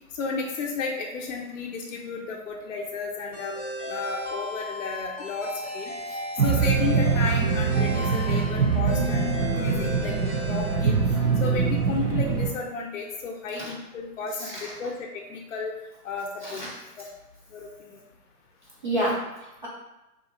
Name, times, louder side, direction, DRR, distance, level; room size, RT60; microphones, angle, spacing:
voice 1, 0.1-3.6 3.9-5.9 6.4-10.1 10.4-15.7 16.0-16.7 17.0-17.1 17.5-18.0, left 4 dB, 55° left, 0 dB, 0.5 m, -33 dB
sound 1, 3.3-11.5, left 1 dB, 15° left, 0.7 m, -36 dB
sound 2, 6.4-12.5, right 5 dB, 70° right, 0.7 m, -24 dB
voice 2, 14.4-14.7 16.4-16.8 18.8-19.7, right 1 dB, 35° right, -6 dB, 0.4 m, -30 dB
2.6 x 2.4 x 2.8 m, 0.98 s
hypercardioid pair, 135°, 47 cm